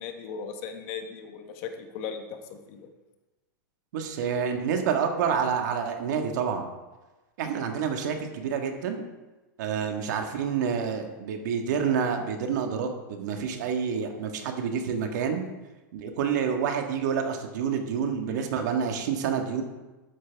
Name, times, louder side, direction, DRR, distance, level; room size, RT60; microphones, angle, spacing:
voice 1, 0.0-2.9, left 6 dB, 45° left, 6 dB, 1.3 m, -37 dB
voice 2, 3.9-6.7 7.4-9.0 9.6-15.4 15.9-19.6, right 7 dB, 60° right, 4 dB, 1.8 m, -28 dB
13.0 x 9.4 x 3.6 m, 1.1 s
supercardioid pair, 155°, 11 cm